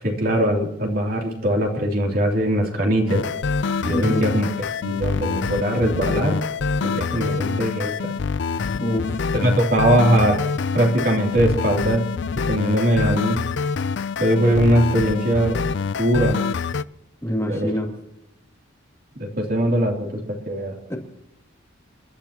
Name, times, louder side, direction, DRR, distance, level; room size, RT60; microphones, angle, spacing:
voice 1, 0.0-3.2 3.8-4.5 4.8-6.4 6.8-8.1 9.3-10.4 10.7-12.0 12.3-13.4 14.2-15.6 16.0-16.4 17.5-17.7 19.2-20.8, right 1 dB, 45° right, 1 dB, 3.1 m, -21 dB
sound 1, 3.1-16.8, left 5 dB, 60° left, 0.4 m, -26 dB
voice 2, 3.9-4.3 8.7-9.2 17.2-17.9 20.9-21.0, equal, 15° left, 0 dB, 2.3 m, -25 dB
29.0 x 11.5 x 2.9 m, 0.82 s
head